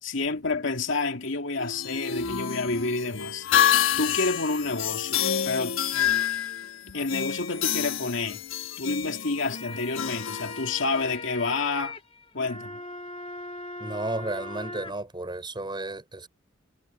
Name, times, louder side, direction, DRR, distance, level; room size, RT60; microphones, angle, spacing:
voice 1, 0.0-3.5 4.0-5.8 6.9-8.4 8.8-12.0 12.3-12.8, left 3 dB, 70° left, 2.4 m, -29 dB
sound 1, 1.6-11.1, left 9 dB, 90° left, 1.1 m, -28 dB
sound 2, 9.3-14.9, left 2 dB, 30° left, 1.7 m, -40 dB
voice 2, 13.8-16.3, right 2 dB, 25° right, 4.8 m, -33 dB
head